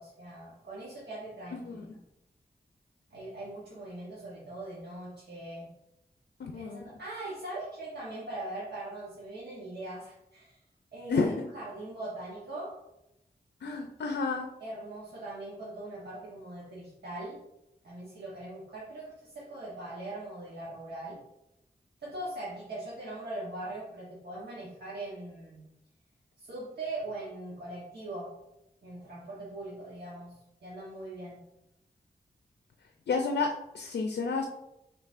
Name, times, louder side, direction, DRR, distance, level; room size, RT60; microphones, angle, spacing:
voice 1, 0.0-2.0 3.1-5.7 6.4-10.6 10.9-12.8 14.6-17.4 17.8-21.2 22.0-25.6 26.4-28.3 28.8-31.4, right 2 dB, 75° right, -7 dB, 1.0 m, -41 dB
voice 2, 6.4-6.8 11.1-11.5 13.6-14.5 33.1-34.5, left 4 dB, 85° left, 3 dB, 0.4 m, -30 dB
5.4 x 3.2 x 2.5 m, 0.87 s
wide cardioid pair, 65°, 17 cm